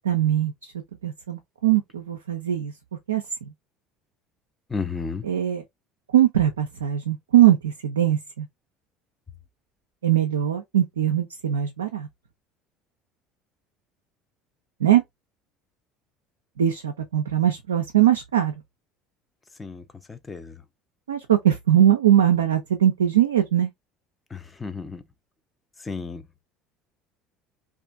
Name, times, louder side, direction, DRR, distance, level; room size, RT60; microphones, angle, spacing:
voice 1, 0.1-0.7 1.0-2.7 3.1-3.2 5.2-5.6 6.1-8.5 10.0-12.1 14.8-15.0 16.6-18.5 21.1-23.7, right 11 dB, 85° right, 0.3 m, -21 dB
voice 2, 4.7-5.2 19.6-20.6 24.3-25.0 25.8-26.2, left 5 dB, 20° left, 0.5 m, -33 dB
2.5 x 2.4 x 2.3 m
hypercardioid pair, 70°, 0 cm